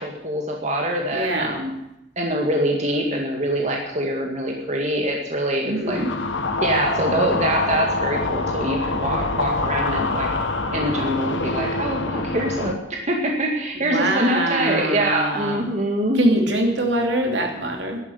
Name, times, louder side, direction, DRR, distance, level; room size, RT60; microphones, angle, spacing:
voice 1, 0.0-1.7 2.2-6.0 6.6-10.3 10.7-16.2, right 1 dB, 35° right, 0 dB, 2.1 m, -24 dB
voice 2, 1.1-1.5 5.6-6.1 10.6-11.3 13.8-15.7 16.2-18.0, right 1 dB, 65° right, 3 dB, 2.9 m, -24 dB
sound 1, 5.9-12.7, left 3 dB, 70° left, 1.5 m, -25 dB
12.0 x 11.0 x 9.7 m, 0.84 s
head